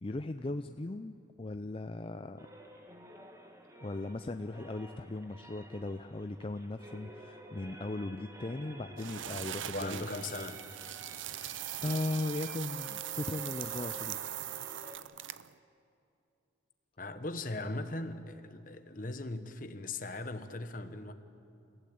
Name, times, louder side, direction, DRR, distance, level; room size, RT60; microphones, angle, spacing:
voice 1, 0.0-2.5 3.8-10.1 11.0-14.2, left 2 dB, 30° left, 8 dB, 0.5 m, -38 dB
sound 1, 2.4-15.0, right 1 dB, 15° right, 1.5 m, -52 dB
sound 2, 9.0-15.5, right 11 dB, 80° right, 0.6 m, -41 dB
voice 2, 9.7-10.6 17.0-21.1, left 2 dB, 45° left, 9 dB, 1.2 m, -39 dB
29.5 x 15.5 x 8.6 m, 2.6 s
head